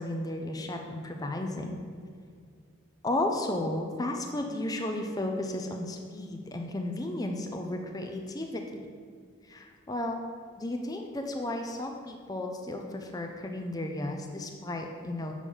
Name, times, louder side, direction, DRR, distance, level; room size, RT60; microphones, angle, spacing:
voice 1, 0.0-1.8 3.0-8.6 9.4-10.2 10.6-15.3, left 1 dB, 15° left, 3 dB, 0.5 m, -33 dB
7.0 x 4.9 x 5.3 m, 2.1 s
head